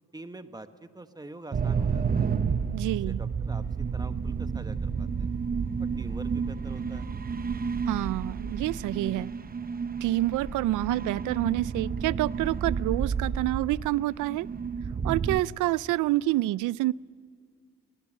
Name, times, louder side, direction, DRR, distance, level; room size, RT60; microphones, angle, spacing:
voice 1, 0.1-2.3 3.1-5.3 5.8-7.1, right 2 dB, 15° right, 9 dB, 1.2 m, -45 dB
sound 1, 1.5-15.4, right 6 dB, 30° right, 0.9 m, -31 dB
voice 2, 2.7-3.2 7.9-9.3 10.0-14.5 15.0-16.9, right 17 dB, 80° right, 22 dB, 0.5 m, -27 dB
20.5 x 19.0 x 7.5 m, 2.1 s
cardioid pair, 90°, 30 cm